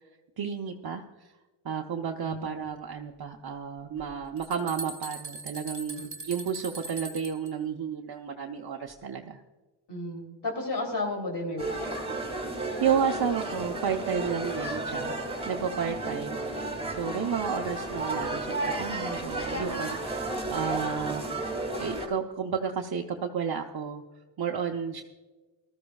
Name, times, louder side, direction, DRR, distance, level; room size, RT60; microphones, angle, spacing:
voice 1, 0.4-1.3 1.6-9.4 12.8-15.1 15.5-16.4 16.9-21.2 21.5-24.0 24.4-25.0, right 7 dB, 55° right, 1 dB, 0.9 m, -32 dB
sound 1, 4.0-4.1 4.4-7.5, right 3 dB, 40° right, 1.4 m, -40 dB
voice 2, 9.9-11.7, left 2 dB, 65° left, 0 dB, 3.2 m, -33 dB
sound 2, 11.6-22.1, right 2 dB, 15° right, 2.6 m, -33 dB
19.5 x 13.5 x 2.4 m, 1.2 s
wide cardioid pair, 105°, 45 cm